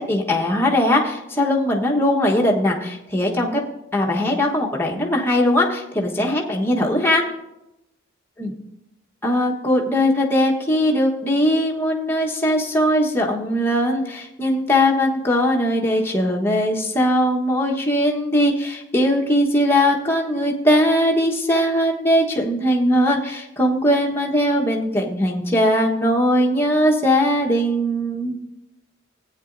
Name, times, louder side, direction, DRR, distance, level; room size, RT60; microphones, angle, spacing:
voice 1, 0.0-3.6 3.9-7.2 8.4-8.5 9.2-28.3, equal, 10° left, -2 dB, 1.2 m, -20 dB
15.5 x 9.0 x 2.6 m, 0.89 s
head